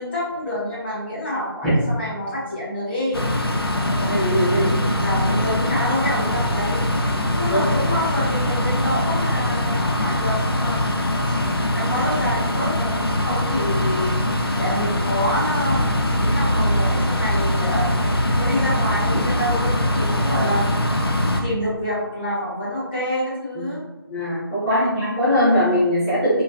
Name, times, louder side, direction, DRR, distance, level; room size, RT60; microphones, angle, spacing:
voice 1, 0.0-3.2 4.5-6.9 7.3-11.0 11.7-14.2 14.6-15.9 16.2-17.9 18.4-20.6 21.4-23.8 24.6-25.1, left 1 dB, 25° left, -9 dB, 1.4 m, -27 dB
sound 1, 3.1-21.4, left 1 dB, 75° left, 0.6 m, -22 dB
voice 2, 4.0-4.7 7.5-7.7 23.5-23.7 24.1-26.4, equal, 5° left, -18 dB, 0.7 m, -20 dB
3.7 x 2.1 x 2.7 m, 1.0 s
figure-of-eight pair, 155°, 13 cm